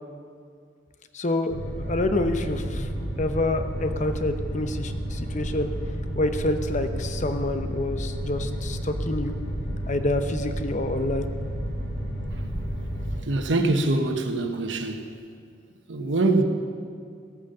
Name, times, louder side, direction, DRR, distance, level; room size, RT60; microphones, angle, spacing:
voice 1, 1.1-1.6 1.9-2.9 3.2-5.7 6.1-9.4 9.9-11.3, left 2 dB, 40° left, 8 dB, 0.8 m, -27 dB
sound 1, 1.5-13.2, equal, 80° left, 3.9 m, -31 dB
voice 2, 13.2-15.1 15.9-16.4, right 2 dB, 85° right, 5 dB, 1.1 m, -24 dB
16.0 x 9.0 x 6.8 m, 2.2 s
head